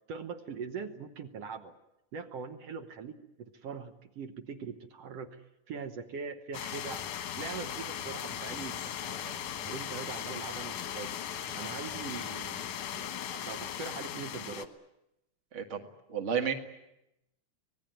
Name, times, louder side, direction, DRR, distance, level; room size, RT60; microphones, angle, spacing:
voice 1, 0.1-1.8 2.1-7.0 7.4-11.2 11.5-14.7, right 5 dB, 65° right, 7 dB, 2.1 m, -42 dB
sound 1, 6.5-14.7, left 10 dB, 90° left, 2.7 m, -38 dB
voice 2, 16.1-16.5, right 7 dB, 30° right, 5 dB, 1.5 m, -31 dB
25.5 x 19.0 x 9.2 m, 0.86 s
omnidirectional pair, 3.3 m